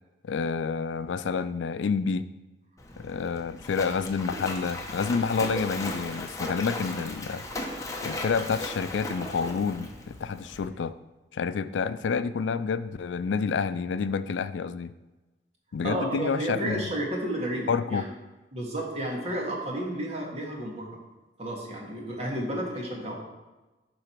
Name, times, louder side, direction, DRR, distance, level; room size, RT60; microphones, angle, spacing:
voice 1, 0.2-2.3 3.0-7.4 8.0-11.0 11.3-14.9 15.7-16.9 17.7-18.1, left 5 dB, 90° left, 13 dB, 0.4 m, -29 dB
Splash splatter, 2.8-10.7, left 1 dB, 20° left, 0.9 m, -37 dB
voice 2, 15.8-18.1 18.5-20.9 21.4-23.1, right 1 dB, 35° right, -2 dB, 1.8 m, -32 dB
11.5 x 4.0 x 4.5 m, 1.1 s
head